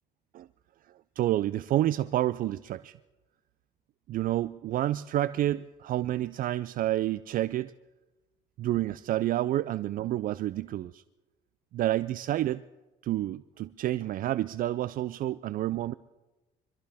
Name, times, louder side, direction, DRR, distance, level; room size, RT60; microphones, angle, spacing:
voice 1, 1.2-3.0 4.1-7.7 8.6-11.0 11.7-12.6 13.0-15.9, right 14 dB, 55° right, 14 dB, 0.4 m, -29 dB
25.0 x 14.0 x 3.5 m, 1.1 s
cardioid pair, 110°, 17 cm